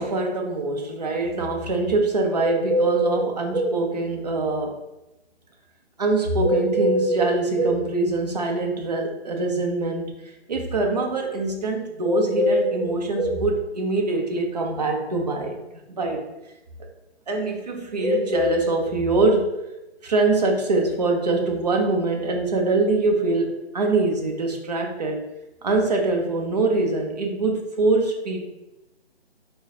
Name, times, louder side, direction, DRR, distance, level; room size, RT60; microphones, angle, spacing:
voice 1, 0.0-4.8 6.0-15.6 15.9-16.3 17.3-19.6 20.0-25.2 25.6-28.5, right 3 dB, 40° right, 1 dB, 0.5 m, -24 dB
sound 1, 2.4-3.8 6.4-7.8 12.0-13.4 18.0-19.4, equal, 60° right, 0.9 m, -23 dB
4.4 x 2.1 x 2.7 m, 0.94 s
figure-of-eight pair, 160°, 34 cm